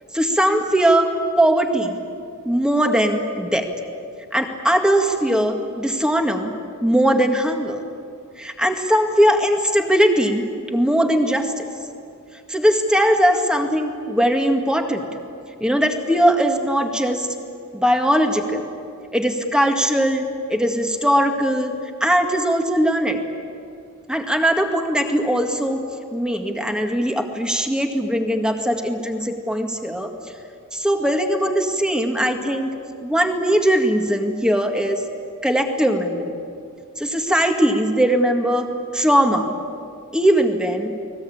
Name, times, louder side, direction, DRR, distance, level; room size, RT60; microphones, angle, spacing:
voice 1, 0.1-1.1 1.4-2.0 2.5-3.7 4.3-6.5 6.8-7.8 8.4-11.7 12.5-15.1 15.6-17.3 17.7-18.7 19.1-23.2 24.1-25.8 26.1-30.1 30.7-32.7 33.0-35.0 35.4-36.4 37.0-39.5 40.1-40.9, equal, 5° right, 4 dB, 1.9 m, -20 dB
29.5 x 21.0 x 8.8 m, 2.5 s
head